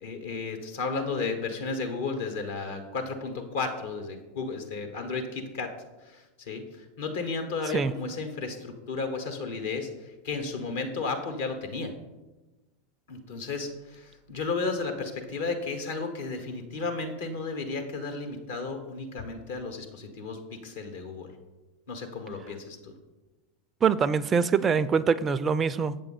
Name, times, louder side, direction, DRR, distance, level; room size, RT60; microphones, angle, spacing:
voice 1, 0.0-5.7 6.0-11.9 13.1-21.3 21.9-22.9, left 4 dB, 65° left, 1.1 m, -33 dB
voice 2, 23.8-26.0, right 6 dB, 25° right, 0.3 m, -24 dB
7.6 x 6.9 x 4.1 m
figure-of-eight pair, 90°, 0 cm